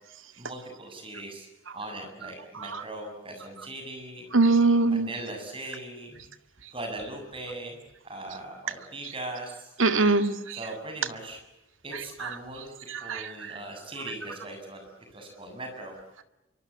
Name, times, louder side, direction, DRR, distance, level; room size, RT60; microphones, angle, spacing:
voice 1, 0.4-1.5 1.7-4.2 4.8-6.2 6.7-7.8 8.0-9.7 10.5-11.4 11.8-12.7 13.0-14.8 15.1-16.0, right 2 dB, 25° right, 4 dB, 7.5 m, -39 dB
voice 2, 4.3-5.1 9.8-10.6 12.2-12.3 12.9-13.3, right 3 dB, 75° right, 8 dB, 2.1 m, -22 dB
26.5 x 24.5 x 8.5 m, 0.92 s
head